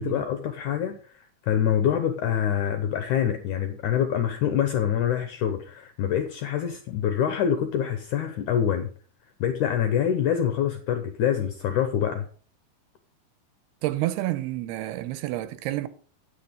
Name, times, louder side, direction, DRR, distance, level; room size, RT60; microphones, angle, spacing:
voice 1, 0.0-8.9 9.4-12.3, left 9 dB, 75° left, 1.8 m, -25 dB
voice 2, 13.8-15.9, right 15 dB, 85° right, 2.8 m, -29 dB
9.3 x 8.6 x 5.2 m
omnidirectional pair, 4.6 m